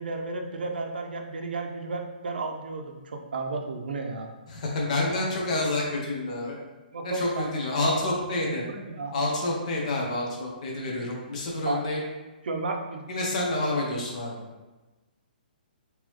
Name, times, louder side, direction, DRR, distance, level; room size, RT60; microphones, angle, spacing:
voice 1, 0.0-4.3 5.1-5.2 6.9-7.5 7.8-8.1 8.4-9.2 11.6-11.8 12.4-13.1 13.6-13.9, right 3 dB, 80° right, 3 dB, 0.6 m, -33 dB
voice 2, 4.5-6.6 7.0-8.6 9.1-12.0 13.1-14.3, left 2 dB, 45° left, -2 dB, 1.0 m, -28 dB
3.7 x 3.0 x 3.1 m, 1.2 s
hypercardioid pair, 165°, 5 cm